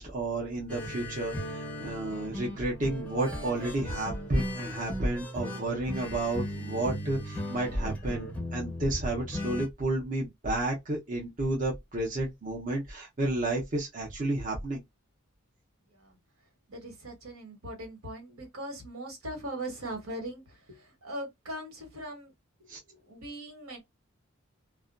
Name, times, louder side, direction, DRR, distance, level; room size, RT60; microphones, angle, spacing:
voice 1, 0.0-14.8 22.7-22.8, right 2 dB, 35° right, 0.7 m, -31 dB
sound 1, 0.7-9.7, equal, 5° left, 0.5 m, -37 dB
voice 2, 16.7-22.3 22.6-23.8, right 1 dB, 80° right, 1.3 m, -40 dB
2.4 x 2.2 x 2.3 m
head